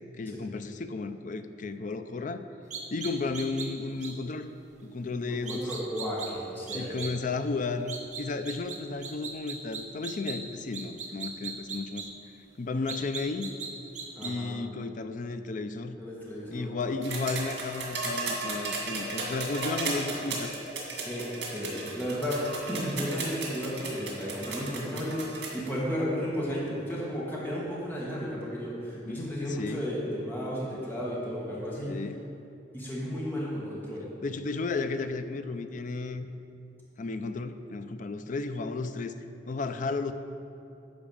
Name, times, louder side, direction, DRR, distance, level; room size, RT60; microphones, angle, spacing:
voice 1, 0.2-2.5 2.9-4.5 4.8-5.7 6.7-12.0 12.6-13.5 14.2-16.0 16.5-20.5 29.1-29.9 31.8-32.2 34.2-36.3 37.0-39.1 39.5-40.1, left 3 dB, 45° left, 9 dB, 0.5 m, -33 dB
sound 1, 2.7-3.7 4.0-4.1 5.5-6.3 6.7-7.1 7.9-8.8 9.0-10.4 10.7-12.1 12.9-13.7 14.0-14.3, right 6 dB, 45° right, 1.2 m, -37 dB
voice 2, 5.3-7.2 14.2-14.6 16.0-16.8 20.9-22.4 22.7-32.0 32.7-34.1, equal, 10° left, -7 dB, 1.8 m, -34 dB
sound 2, 17.0-25.7 26.9-27.0, right 3 dB, 80° right, 2.1 m, -35 dB
10.5 x 5.0 x 7.0 m, 2.7 s
head